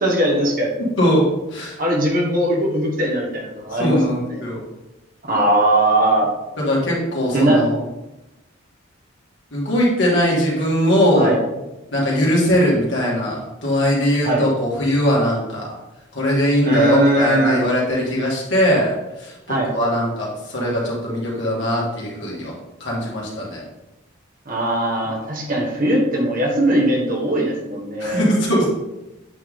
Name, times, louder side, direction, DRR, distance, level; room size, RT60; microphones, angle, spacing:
voice 1, 0.0-0.7 1.8-4.0 4.3-4.4 5.2-6.3 7.3-7.6 10.8-11.4 14.2-14.4 16.6-17.6 19.5-19.7 24.5-28.2, right 1 dB, 40° right, -1 dB, 1.4 m, -19 dB
voice 2, 3.7-4.6 6.6-7.8 9.5-11.3 11.9-15.7 16.1-22.5 22.8-23.6 28.0-28.7, equal, 60° left, -4 dB, 2.3 m, -20 dB
8.3 x 4.7 x 3.8 m, 0.98 s
head